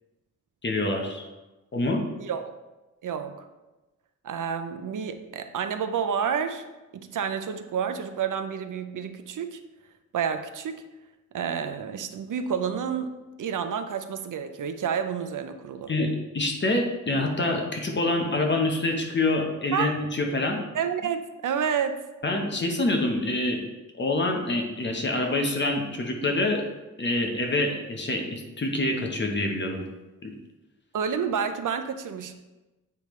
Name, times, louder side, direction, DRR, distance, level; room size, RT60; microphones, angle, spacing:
voice 1, 0.6-1.3 1.7-2.0 15.9-20.6 22.2-23.6 23.9-26.6 27.0-29.8 30.2-30.3, left 2 dB, 35° left, 2 dB, 1.0 m, -26 dB
voice 2, 2.2-2.5 3.0-3.4 4.2-6.7 6.9-9.6 10.1-10.8 11.3-15.9 19.7-19.9 20.7-22.0 30.9-32.3, right 7 dB, 80° right, 9 dB, 0.6 m, -29 dB
8.0 x 5.2 x 3.1 m, 1.1 s
wide cardioid pair, 140°, 31 cm